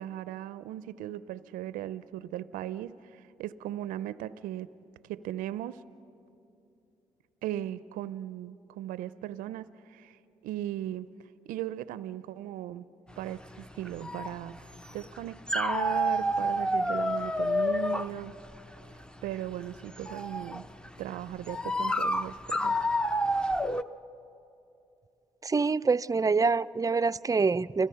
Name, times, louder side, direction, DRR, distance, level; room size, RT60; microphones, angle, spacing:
voice 1, 0.0-4.7 5.1-5.8 7.4-11.1 11.5-12.9 13.2-18.3 19.2-20.7 21.0-22.8, right 12 dB, 90° right, 16 dB, 0.4 m, -37 dB
sound 1, 13.1-23.8, equal, 5° left, 0.7 m, -30 dB
voice 2, 25.4-27.9, right 4 dB, 25° right, 16 dB, 0.4 m, -26 dB
30.0 x 21.0 x 5.6 m, 2.8 s
supercardioid pair, 45°, 14 cm